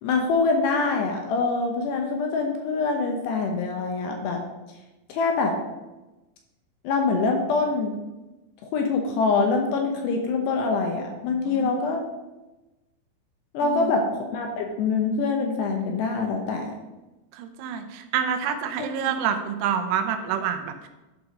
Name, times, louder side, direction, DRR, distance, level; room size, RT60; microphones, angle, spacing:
voice 1, 0.0-4.4 5.1-5.5 6.8-7.9 8.7-12.0 13.5-14.0 14.3-16.7 18.8-18.9, left 4 dB, 75° left, 2 dB, 2.8 m, -24 dB
voice 2, 11.5-11.8 13.6-14.0 17.3-20.9, right 8 dB, 85° right, 7 dB, 3.1 m, -28 dB
11.5 x 4.7 x 5.1 m, 1.1 s
omnidirectional pair, 5.5 m